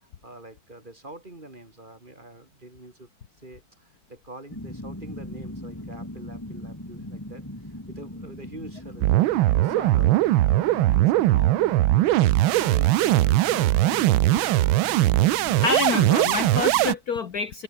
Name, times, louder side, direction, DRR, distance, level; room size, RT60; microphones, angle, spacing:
voice 1, 0.0-3.1 3.4-10.3 10.9-11.6 11.9-14.9, right 2 dB, 25° right, 3.0 m, -45 dB
sound 1, 4.5-16.9, left 1 dB, 10° left, 3.6 m, -39 dB
sound 2, 9.0-16.9, right 16 dB, 80° right, 1.4 m, -20 dB
voice 2, 15.6-17.6, left 5 dB, 50° left, 1.6 m, -27 dB
omnidirectional pair, 2.2 m